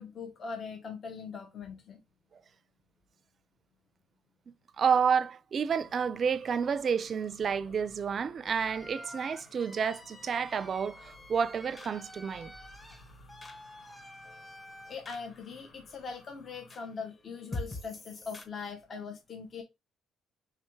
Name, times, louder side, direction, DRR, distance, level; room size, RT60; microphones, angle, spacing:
voice 1, 0.0-2.0 14.9-19.6, left 5 dB, 45° left, 0.8 m, -41 dB
voice 2, 4.8-12.5, right 6 dB, 45° right, 0.4 m, -30 dB
sound 1, 5.7-16.7, left 2 dB, 70° left, 1.2 m, -58 dB
sound 2, 6.2-18.4, left 2 dB, 30° left, 1.2 m, -49 dB
sound 3, 8.6-15.0, equal, 10° left, 0.9 m, -50 dB
3.4 x 3.3 x 4.5 m
cardioid pair, 110°, 0 cm